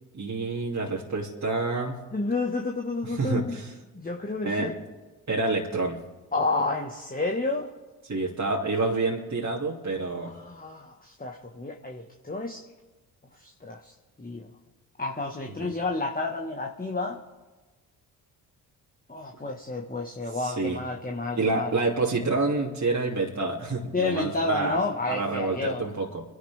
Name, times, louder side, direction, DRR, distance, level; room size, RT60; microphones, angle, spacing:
voice 1, 0.1-2.0 3.0-3.7 4.4-4.7 5.3-6.0 8.0-10.3 15.6-15.7 20.3-20.8 21.4-24.8 25.1-26.2, right 3 dB, 35° right, -4 dB, 2.9 m, -28 dB
voice 2, 2.1-3.5 3.9-4.7 6.3-7.7 10.2-12.6 13.4-13.9 14.2-14.5 15.0-17.2 19.1-21.7 23.9-25.9, left 3 dB, 20° left, 1 dB, 1.7 m, -30 dB
25.5 x 11.0 x 3.6 m, 1.2 s
hypercardioid pair, 45°, 47 cm